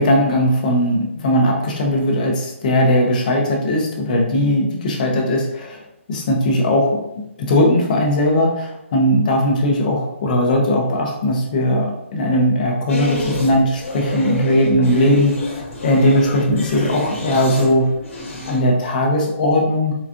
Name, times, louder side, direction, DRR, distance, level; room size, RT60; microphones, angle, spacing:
voice 1, 0.0-5.8 6.1-7.0 7.4-17.9 18.5-19.9, left 1 dB, 35° left, 0 dB, 0.7 m, -18 dB
sound 1, 12.9-18.8, left 2 dB, 80° left, 1.3 m, -29 dB
4.0 x 2.4 x 2.4 m, 0.83 s
hypercardioid pair, 160°, 7 cm